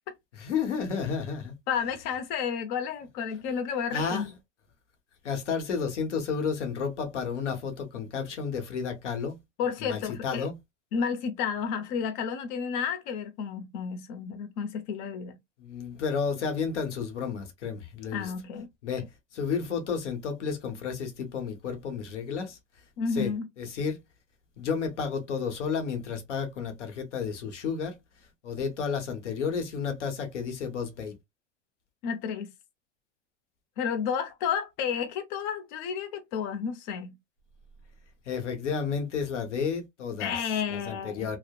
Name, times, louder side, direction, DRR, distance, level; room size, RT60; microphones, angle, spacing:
voice 1, 0.4-1.5 3.9-4.3 5.2-9.4 9.8-10.5 15.6-18.3 18.8-19.0 19.3-22.6 23.1-23.3 23.6-24.0 24.6-27.9 28.4-31.1 38.3-40.3 40.7-41.4, left 6 dB, 90° left, 0.9 m, -31 dB
voice 2, 1.7-4.3 9.6-10.5 10.9-15.4 18.1-18.7 23.0-23.5 32.0-32.5 33.8-37.1 40.2-41.3, left 7 dB, 50° left, 0.6 m, -31 dB
2.8 x 2.0 x 2.2 m
hypercardioid pair, 110°, 35 cm